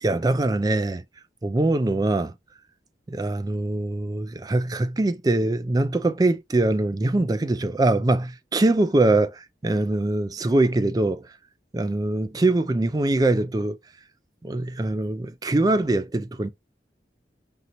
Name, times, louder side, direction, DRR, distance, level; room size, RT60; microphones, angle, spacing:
voice 1, 0.0-1.0 1.4-2.3 3.1-11.2 11.7-13.8 14.4-16.5, right 2 dB, 20° right, 0.4 m, -23 dB
5.3 x 2.7 x 2.9 m
head